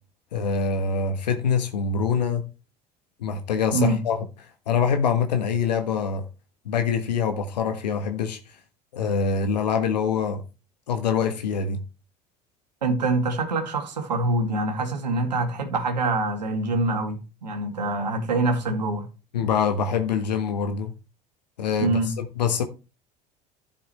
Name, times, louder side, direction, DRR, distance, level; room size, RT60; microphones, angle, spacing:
voice 1, 0.3-2.4 3.2-4.2 4.7-6.2 6.6-8.4 8.9-10.4 10.9-11.8 19.3-20.9 21.6-22.6, left 6 dB, 80° left, 1.3 m, -24 dB
voice 2, 12.8-19.1 21.8-22.1, right 2 dB, 85° right, 2.4 m, -25 dB
11.5 x 7.0 x 4.4 m
figure-of-eight pair, 65°, 21 cm